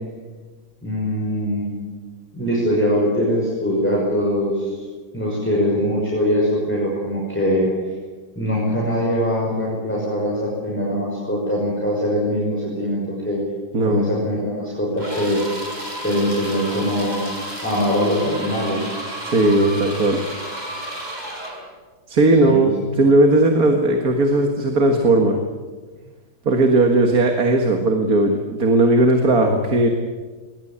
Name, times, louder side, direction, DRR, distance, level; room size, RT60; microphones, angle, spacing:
voice 1, 0.8-1.7 2.3-4.8 5.1-7.7 8.4-13.4 13.8-15.4 16.0-17.2 17.6-18.9 22.4-22.9, equal, 5° left, -5 dB, 5.7 m, -22 dB
voice 2, 13.7-14.0 19.2-20.2 22.1-25.4 26.5-29.9, right 2 dB, 50° right, 4 dB, 2.1 m, -17 dB
sound 1, 15.0-21.7, right 1 dB, 20° right, 5.0 m, -32 dB
21.0 x 20.0 x 8.8 m, 1.4 s
omnidirectional pair, 2.1 m